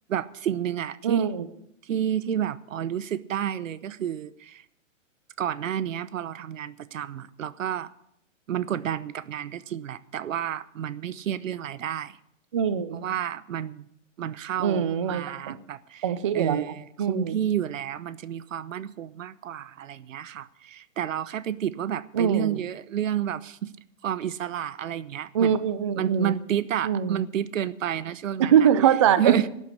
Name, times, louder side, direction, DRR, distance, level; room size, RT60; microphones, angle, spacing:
voice 1, 0.1-1.3 1.8-4.6 5.4-7.9 8.5-12.2 12.9-13.9 14.2-16.1 16.3-23.7 24.0-25.6 26.0-28.7 29.2-29.5, right 10 dB, 75° right, 0.9 m, -30 dB
voice 2, 1.0-1.5 12.5-13.0 14.6-15.6 16.0-16.7 17.0-17.4 22.1-22.5 25.3-26.4 26.8-27.2 28.4-29.4, right 8 dB, 25° right, 0.4 m, -22 dB
12.5 x 8.3 x 8.5 m
hypercardioid pair, 155°, 39 cm